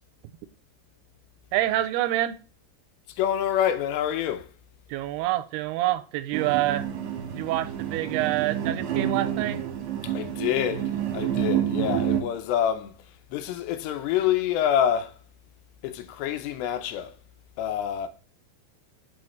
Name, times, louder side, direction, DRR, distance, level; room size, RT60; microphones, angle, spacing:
voice 1, 1.5-2.4 4.9-6.9 7.3-9.6, right 15 dB, 85° right, 2.5 m, -27 dB
voice 2, 3.1-4.5 10.0-13.0 13.3-15.1 15.8-17.1 17.6-18.1, left 10 dB, 90° left, 2.9 m, -27 dB
sound 1, 6.3-12.2, right 10 dB, 65° right, 1.9 m, -28 dB
6.2 x 5.7 x 3.1 m
omnidirectional pair, 4.8 m